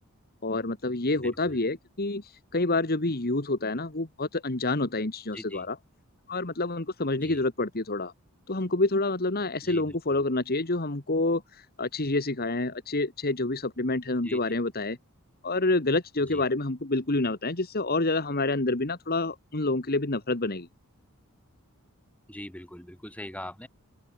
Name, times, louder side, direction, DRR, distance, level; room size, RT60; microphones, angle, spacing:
voice 1, 0.4-5.8 6.3-8.1 8.5-15.0 15.4-20.7, left 2 dB, 45° left, 1.8 m, -28 dB
voice 2, 1.2-1.6 5.3-5.7 7.2-7.4 9.6-10.2 14.2-14.4 16.2-16.4 22.3-23.7, left 1 dB, 5° left, 6.1 m, -42 dB
open air
head